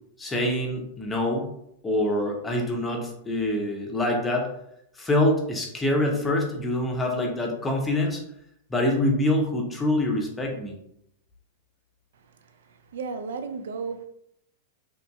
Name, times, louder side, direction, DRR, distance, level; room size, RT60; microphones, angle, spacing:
voice 1, 0.2-1.5 1.8-4.5 5.0-8.2 8.7-10.8, left 1 dB, 15° left, 0.6 m, -25 dB
voice 2, 12.1-14.1, right 5 dB, 75° right, 0.4 m, -35 dB
2.9 x 2.6 x 2.2 m
hypercardioid pair, 115°, 0 cm